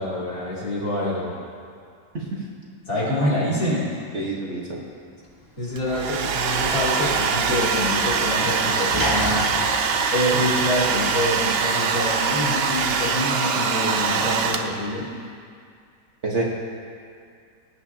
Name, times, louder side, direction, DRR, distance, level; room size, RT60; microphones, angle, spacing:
voice 1, 0.0-1.3 2.9-3.9 5.6-9.5 10.1-15.1, left 1 dB, 55° left, -8 dB, 3.5 m, -26 dB
voice 2, 4.1-4.8 16.2-16.4, right 2 dB, 45° right, -4 dB, 1.6 m, -27 dB
Sliding door / Slam, 5.2-11.1, left 1 dB, 15° right, 1.5 m, -34 dB
Domestic sounds home sounds, 5.8-15.0, right 5 dB, 80° right, 0.5 m, -23 dB
20.0 x 9.4 x 2.9 m, 2.2 s
omnidirectional pair, 1.8 m